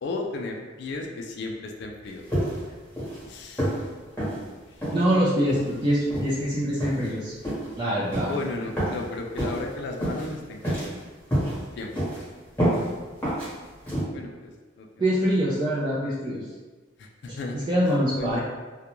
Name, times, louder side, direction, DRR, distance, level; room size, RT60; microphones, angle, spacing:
voice 1, 0.0-2.2 3.3-3.8 4.1-4.7 8.3-10.9 11.8-11.9 14.1-14.9 17.0-17.7 18.1-18.4, left 3 dB, 60° left, 2 dB, 0.3 m, -34 dB
sound 1, 2.3-2.7 3.0-3.2 3.6-3.8 4.2-4.4 4.8-5.0 5.5-5.7 6.1-6.3 6.8-7.1 7.4-7.7 8.1-8.3 8.8-9.0 9.4-9.6 10.0-10.3 10.6-11.0 11.3-11.6 11.9-12.2 12.6-12.8 13.2-13.5 13.9-14.0, equal, 10° left, 1.0 m, -27 dB
voice 2, 4.9-7.3 7.8-8.3 15.0-16.5 17.5-18.4, equal, 20° right, -9 dB, 0.4 m, -24 dB
2.4 x 2.2 x 2.9 m, 1.3 s
head